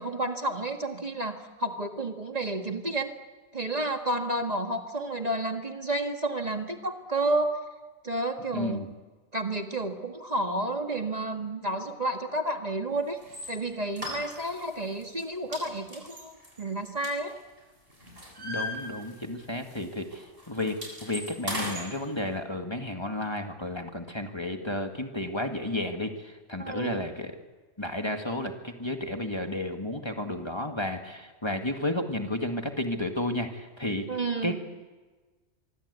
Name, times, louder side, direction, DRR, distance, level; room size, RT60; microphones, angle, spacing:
voice 1, 0.0-3.1 3.5-7.6 8.0-8.9 9.3-13.2 13.5-17.4 26.6-27.0 34.1-34.6, right 2 dB, 35° right, 4 dB, 1.7 m, -31 dB
voice 2, 8.5-8.9 18.4-27.4 27.8-34.1 34.4-34.6, left 1 dB, 20° left, 4 dB, 2.0 m, -32 dB
sound 1, 13.2-13.5 14.0-14.7 15.0-15.2 15.5-17.6 17.9-19.4 19.6-19.8 20.1-21.9, left 1 dB, 50° right, 7.5 m, -37 dB
24.5 x 24.0 x 8.2 m, 1.3 s
omnidirectional pair, 1.2 m